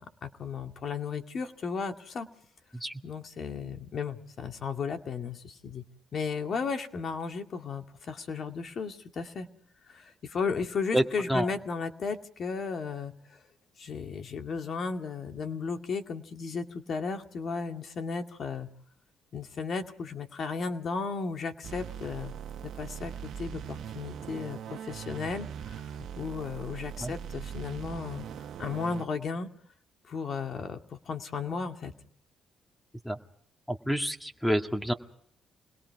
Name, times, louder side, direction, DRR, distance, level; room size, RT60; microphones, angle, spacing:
voice 1, 0.0-2.3 3.0-5.8 6.1-9.5 9.9-13.1 13.8-18.7 19.3-22.3 22.6-28.3 28.6-29.5 30.1-31.9, left 5 dB, 55° left, 5 dB, 2.2 m, -35 dB
voice 2, 10.9-11.5 27.0-27.1 33.0-33.2 33.7-34.9, equal, 5° left, 5 dB, 2.1 m, -28 dB
sound 1, 21.6-29.1, right 9 dB, 70° right, 1.2 m, -41 dB
28.0 x 21.0 x 4.8 m, 0.63 s
cardioid pair, 90°, 0 cm